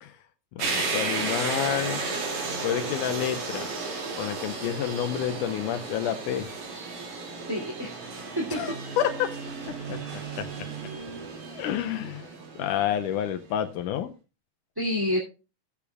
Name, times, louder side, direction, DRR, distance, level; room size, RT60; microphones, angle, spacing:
voice 1, 0.6-2.0 2.6-3.7 4.2-6.5 8.5-9.3 9.7-10.5 11.5-12.3 12.6-14.1, left 10 dB, 90° left, 7 dB, 2.4 m, -29 dB
sound 1, 0.6-13.3, right 4 dB, 65° right, 3.8 m, -34 dB
voice 2, 7.5-8.8 9.9-10.3 14.8-15.2, left 1 dB, 10° right, -3 dB, 2.2 m, -30 dB
15.5 x 8.5 x 2.3 m, 0.30 s
omnidirectional pair, 3.5 m